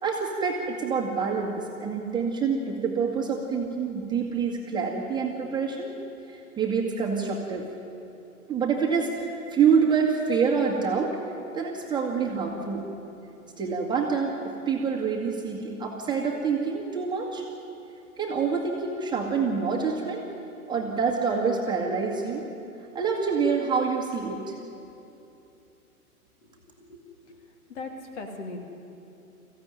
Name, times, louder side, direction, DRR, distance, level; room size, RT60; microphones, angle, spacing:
voice 1, 0.0-5.9 6.3-7.7 8.5-11.2 11.5-12.9 13.6-17.4 18.2-20.2 20.7-22.4 22.9-24.5, right 5 dB, 10° right, -1 dB, 1.7 m, -26 dB
voice 2, 26.5-27.4 27.7-28.6, left 3 dB, 50° left, 4 dB, 2.7 m, -40 dB
21.5 x 15.0 x 9.2 m, 2.8 s
figure-of-eight pair, 125°, 45 cm